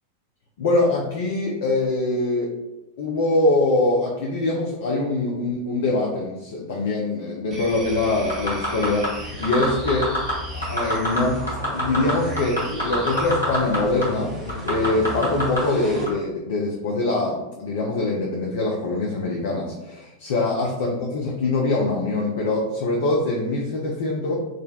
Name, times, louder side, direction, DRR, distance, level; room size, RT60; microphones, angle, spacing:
voice 1, 0.6-2.6 3.0-10.1 10.5-11.4 11.7-24.4, left 2 dB, 55° left, -2 dB, 0.4 m, -23 dB
sound 1, 7.5-16.1, equal, 20° right, 0.8 m, -34 dB
sound 2, 8.3-9.1 9.4-10.3 10.6-11.2 11.5-13.8 14.0-14.1 14.5-15.6 16.1-16.2, equal, 90° left, 1.3 m, -24 dB
3.6 x 2.1 x 2.3 m, 0.97 s
figure-of-eight pair, 90°, 0 cm